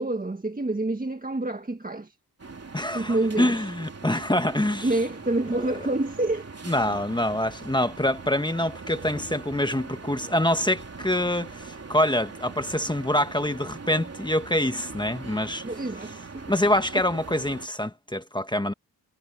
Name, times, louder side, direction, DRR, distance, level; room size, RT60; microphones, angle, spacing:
voice 1, 0.0-2.1 2.9-3.6 4.8-6.5 15.6-16.5 16.9-17.0, right 2 dB, 20° right, 1.6 m, -27 dB
sound 1, 2.4-17.7, right 4 dB, 40° right, 3.0 m, -41 dB
voice 2, 2.7-4.9 5.6-5.7 6.7-15.6 16.5-18.7, left 1 dB, 10° left, 1.5 m, -25 dB
cardioid pair, 70°, 39 cm